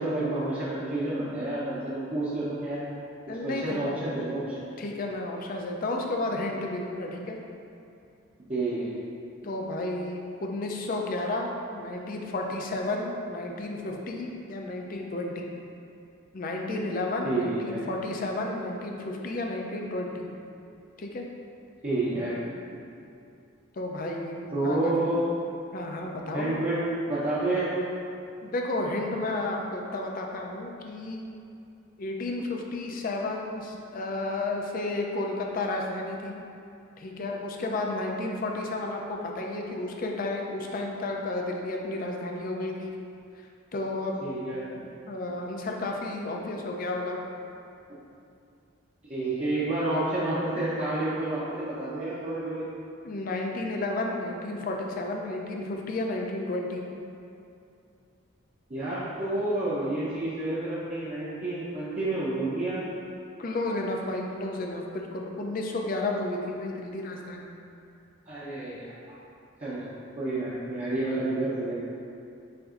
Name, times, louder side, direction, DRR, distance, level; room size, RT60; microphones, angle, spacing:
voice 1, 0.0-2.8 3.4-4.7 8.5-8.9 17.2-17.8 21.8-22.4 24.5-25.3 26.3-26.8 27.1-27.8 44.2-44.8 49.1-52.6 58.7-62.9 68.3-69.2 69.6-69.8 70.2-71.7, right 2 dB, 30° right, -11 dB, 0.6 m, -29 dB
voice 2, 3.3-4.0 4.8-7.4 9.4-15.5 16.3-20.3 21.0-21.3 23.7-24.9 25.7-26.6 28.4-31.2 32.0-36.4 37.0-42.9 43.4-44.2 45.1-47.2 53.0-56.9 63.4-67.5, left 2 dB, 45° left, 1 dB, 0.4 m, -32 dB
7.6 x 2.6 x 2.4 m, 2.5 s
head